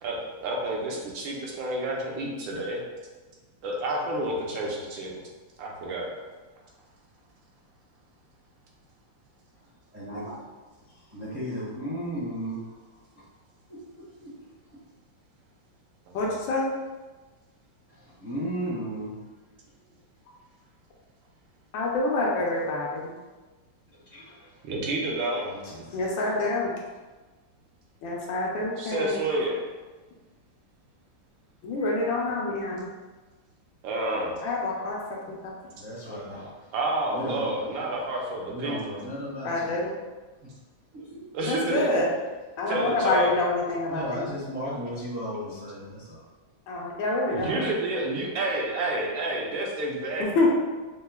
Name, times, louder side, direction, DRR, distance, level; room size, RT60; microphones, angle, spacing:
voice 1, 0.0-2.8 3.6-5.1 5.6-6.1 24.7-25.4 28.8-29.6 33.8-34.3 36.7-38.8 41.3-42.1 42.7-43.3 47.3-50.2, right 2 dB, 75° right, -3 dB, 1.4 m, -29 dB
voice 2, 9.9-10.6 11.1-12.8 14.2-14.3 17.9-19.2 24.1-24.6 25.4-26.0 35.7-36.7 37.1-37.5 38.5-39.8 40.9-42.0 43.9-46.3, equal, 35° right, -10 dB, 0.7 m, -35 dB
voice 3, 16.1-16.7 21.7-23.1 25.9-26.7 28.0-29.2 31.6-32.9 34.4-35.0 35.3-35.5 39.4-39.9 41.4-42.1 42.6-44.3 46.7-47.6 50.2-50.5, left 2 dB, 75° left, -3 dB, 1.3 m, -27 dB
5.4 x 2.1 x 2.2 m, 1.2 s
omnidirectional pair, 2.2 m